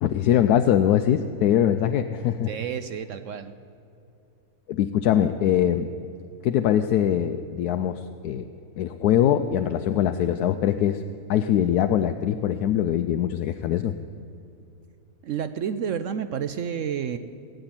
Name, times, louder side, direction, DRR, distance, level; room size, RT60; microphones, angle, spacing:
voice 1, 0.0-2.5 4.7-5.9 6.4-8.4 8.8-11.0 11.3-14.0, left 10 dB, 80° left, 9 dB, 1.1 m, -22 dB
voice 2, 2.5-3.6 15.2-17.2, right 8 dB, 65° right, 10 dB, 0.8 m, -30 dB
18.0 x 7.8 x 9.0 m, 2.7 s
omnidirectional pair, 1.7 m